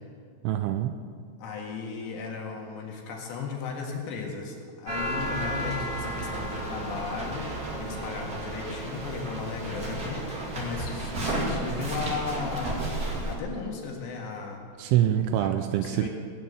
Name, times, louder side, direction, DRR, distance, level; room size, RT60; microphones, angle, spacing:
voice 1, 0.4-0.9 14.8-16.1, right 12 dB, 80° right, 8 dB, 2.8 m, -25 dB
voice 2, 1.4-12.8 13.2-14.6 15.4-16.1, left 5 dB, 65° left, 0 dB, 3.7 m, -36 dB
sound 1, 4.9-13.3, right 1 dB, 50° right, 1.1 m, -32 dB
19.5 x 9.5 x 6.9 m, 2.1 s
omnidirectional pair, 5.8 m